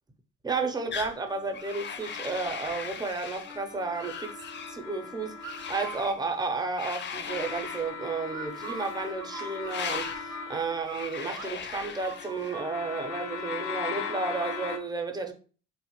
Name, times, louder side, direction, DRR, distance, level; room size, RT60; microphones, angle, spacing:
voice 1, 0.4-4.3 4.7-15.3, right 4 dB, 15° right, 0.5 m, -32 dB
sound 1, 0.9-1.2 1.5-3.6 3.9-4.8 5.4-6.2 6.8-7.9 8.5-9.1 9.6-10.2 10.8-12.6, left 6 dB, 40° left, 0.4 m, -38 dB
sound 2, 1.3-3.0 3.4-6.4 7.2-11.4 11.8-14.8, left 6 dB, 85° left, 0.6 m, -39 dB
sound 3, 5.4-6.0 8.3-11.0 11.3-11.5 11.7-12.7, right 8 dB, 85° right, 0.5 m, -42 dB
2.8 x 2.1 x 2.9 m
cardioid pair, 90°, 30 cm